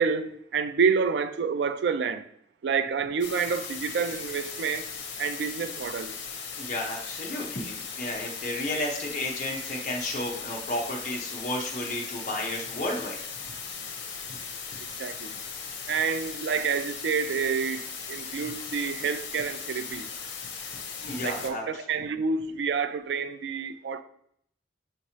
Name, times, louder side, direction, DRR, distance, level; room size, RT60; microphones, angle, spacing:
voice 1, 0.0-2.2 2.6-4.9 5.2-6.1 15.0-15.3 15.9-20.1 21.2-24.0, right 5 dB, 75° right, 0.3 m, -28 dB
sound 1, 3.2-21.5, left 6 dB, 85° left, 0.6 m, -38 dB
voice 2, 6.6-13.2 21.0-21.8, left 1 dB, 45° left, 0.6 m, -32 dB
5.6 x 2.9 x 2.8 m
head